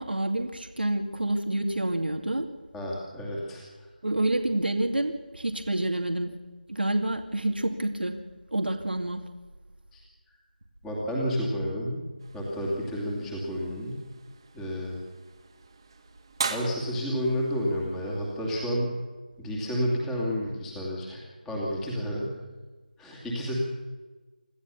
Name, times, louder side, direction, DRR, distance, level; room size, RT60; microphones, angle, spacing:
voice 1, 0.0-2.5 4.0-6.3 6.7-8.2 8.5-9.2, right 1 dB, 85° right, 4 dB, 2.4 m, -28 dB
voice 2, 2.7-3.6 9.9-10.0 10.8-12.1 12.3-14.0 14.5-15.0 16.5-18.9 19.4-22.4 23.0-23.6, equal, 5° left, -3 dB, 2.5 m, -30 dB
sound 1, 12.2-18.7, right 4 dB, 30° right, 1.9 m, -40 dB
26.5 x 14.0 x 7.1 m, 1.3 s
figure-of-eight pair, 170°, 5 cm